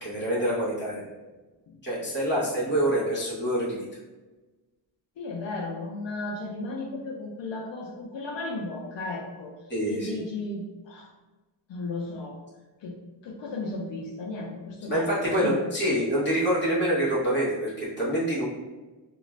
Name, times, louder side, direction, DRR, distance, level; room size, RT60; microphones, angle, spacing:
voice 1, 0.0-1.1 1.8-3.9 9.7-10.2 14.8-18.5, equal, 25° left, -7 dB, 0.9 m, -26 dB
voice 2, 5.2-9.5 9.9-11.1 11.7-12.4 12.8-13.0 13.2-15.1 15.4-15.6, left 2 dB, 75° left, -1 dB, 0.6 m, -34 dB
2.4 x 2.3 x 3.1 m, 1.2 s
wide cardioid pair, 170°, 44 cm